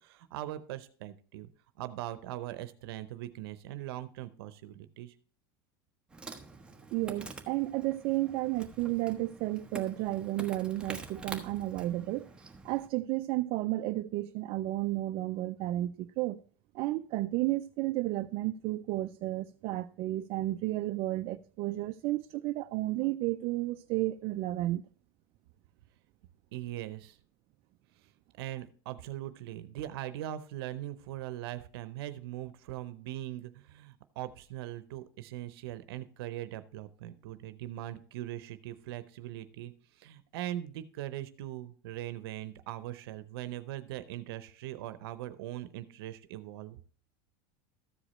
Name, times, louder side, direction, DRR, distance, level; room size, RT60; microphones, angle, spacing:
voice 1, 0.0-1.5 1.8-5.1 26.5-27.2 28.4-46.8, right 13 dB, 85° right, 0.7 m, -41 dB
Insect, 6.1-12.9, right 3 dB, 10° right, 1.0 m, -46 dB
voice 2, 6.9-12.3 12.6-16.4 16.7-24.8, right 17 dB, 50° right, 0.4 m, -32 dB
14.0 x 5.0 x 4.3 m
supercardioid pair, 135°, 12 cm